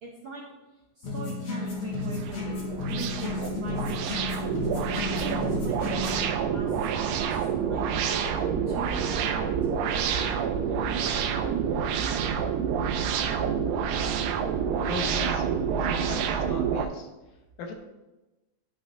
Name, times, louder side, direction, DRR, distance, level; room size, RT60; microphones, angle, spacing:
voice 1, 0.0-0.4 1.0-4.0 4.8-8.3 8.7-9.5, right 4 dB, 70° right, -3 dB, 1.2 m, -41 dB
sound 1, 1.0-6.3, left 3 dB, 55° left, 2.2 m, -32 dB
sound 2, 1.7-16.9, right 7 dB, 90° right, 2.1 m, -28 dB
voice 2, 14.8-15.5 15.8-17.8, left 3 dB, 80° left, 3 dB, 2.4 m, -38 dB
11.0 x 5.5 x 2.6 m, 1.0 s
omnidirectional pair, 3.4 m